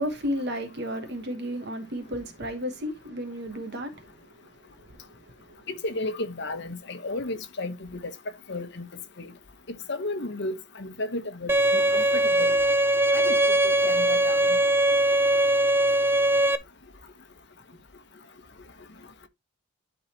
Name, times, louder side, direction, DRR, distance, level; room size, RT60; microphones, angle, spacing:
voice 1, 0.0-4.1, equal, 50° right, 1.3 m, -32 dB
voice 2, 5.7-8.1 8.5-8.8 9.2-9.3 9.7-12.6 13.1-13.4 13.6-14.6, left 2 dB, 50° left, 1.1 m, -33 dB
Bowed string instrument, 11.5-16.5, right 1 dB, 10° right, 0.4 m, -21 dB
11.5 x 4.0 x 2.9 m
head